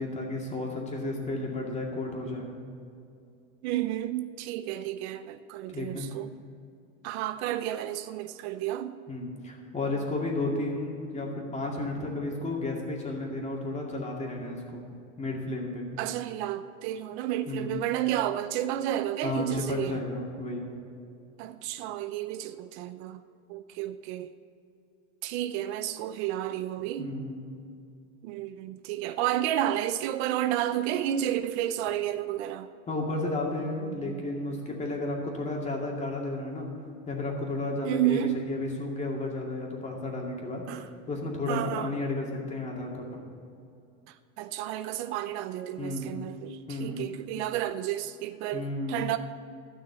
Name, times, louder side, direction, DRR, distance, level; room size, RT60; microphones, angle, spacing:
voice 1, 0.0-2.5 5.7-6.1 9.1-14.8 15.2-15.9 17.5-17.8 19.2-20.7 27.0-27.4 32.9-36.7 37.1-43.1 45.8-46.2 46.7-47.0 48.5-49.1, left 2 dB, 20° left, -1 dB, 2.3 m, -33 dB
voice 2, 3.6-6.3 7.0-9.0 16.0-20.0 21.4-23.2 23.5-24.3 25.2-27.1 28.2-32.7 37.8-38.4 40.7-40.9 41.5-41.9 44.1-49.2, right 12 dB, 60° right, 11 dB, 0.6 m, -31 dB
13.0 x 6.3 x 8.1 m, 2.5 s
supercardioid pair, 130°, 37 cm